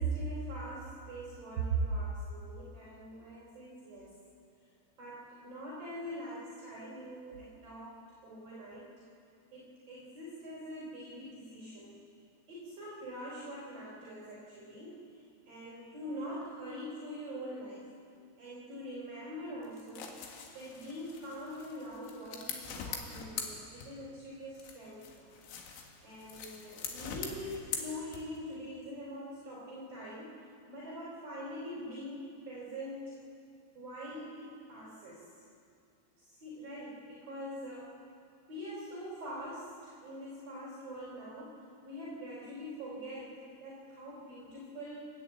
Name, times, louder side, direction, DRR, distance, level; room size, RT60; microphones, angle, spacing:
voice 1, 0.0-4.1 5.0-8.0 8.2-8.9 9.5-12.0 12.5-15.1 15.5-17.9 18.4-20.1 20.5-25.3 26.0-30.4 30.7-33.1 33.7-35.3 36.2-38.0 38.5-45.1, right 1 dB, 35° right, -5 dB, 4.0 m, -42 dB
sound 1, 19.6-24.2 24.5-28.5, left 6 dB, 70° left, 3.8 m, -43 dB
29.5 x 11.5 x 8.2 m, 2.4 s
omnidirectional pair, 6.0 m